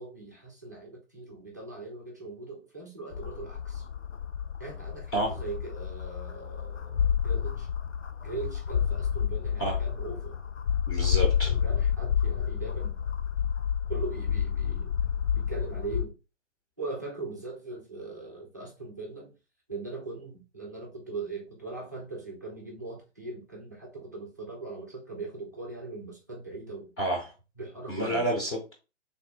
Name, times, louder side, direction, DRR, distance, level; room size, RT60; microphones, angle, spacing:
voice 1, 0.0-3.8 4.6-7.7 8.2-10.4 11.4-13.0 13.9-14.9 15.4-16.1 16.8-19.3 19.7-26.9 27.6-28.3, right 3 dB, 15° right, 0.3 m, -40 dB
sound 1, 3.1-16.1, left 8 dB, 90° left, 0.5 m, -29 dB
voice 2, 10.9-11.6 27.0-27.3 27.9-28.7, right 1 dB, 25° left, 0.7 m, -29 dB
3.4 x 2.1 x 4.2 m
figure-of-eight pair, 130°, 37 cm